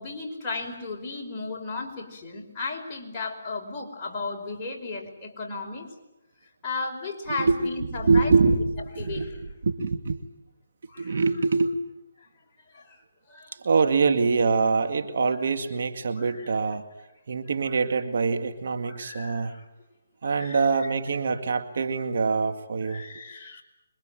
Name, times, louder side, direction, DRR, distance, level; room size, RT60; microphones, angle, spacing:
voice 1, 0.0-5.9 6.6-8.6 9.0-9.5 10.9-11.2 12.7-13.0 13.3-13.6 16.2-16.5 17.7-17.8 18.8-19.7 20.2-20.6 22.9-23.6, left 3 dB, 15° left, -3 dB, 5.3 m, -35 dB
voice 2, 7.3-9.3 9.6-10.2 11.0-11.8 13.5-16.9 17.3-19.6 20.2-23.0, right 4 dB, 60° right, 7 dB, 2.1 m, -24 dB
26.5 x 23.5 x 9.1 m, 0.94 s
hypercardioid pair, 155°, 0 cm